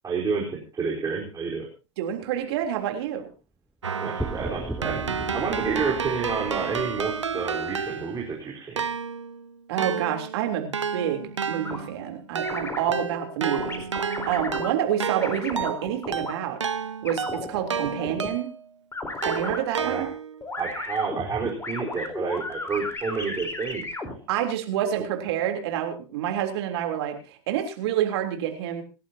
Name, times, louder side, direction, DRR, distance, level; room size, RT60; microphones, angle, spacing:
voice 1, 0.0-1.7 4.0-8.8 19.4-19.5 19.8-20.1 20.6-23.8, right 5 dB, 25° right, -2 dB, 4.3 m, -30 dB
voice 2, 2.0-3.3 9.7-16.6 17.0-18.5 19.2-20.1 24.3-28.8, right 10 dB, 65° right, 4 dB, 3.5 m, -28 dB
Keyboard (musical), 3.8-8.3 8.8-18.7 19.2-20.4, right 6 dB, 90° right, 0.7 m, -31 dB
sound 1, 4.2-7.9, right 2 dB, 5° right, 1.0 m, -37 dB
sound 2, 11.6-11.8 12.4-13.0 13.5-14.7 15.2-16.3 17.1-18.3 18.9-19.6 20.4-24.1, left 3 dB, 15° left, 4.1 m, -34 dB
27.5 x 11.5 x 2.9 m, 0.32 s
hypercardioid pair, 85°, 15 cm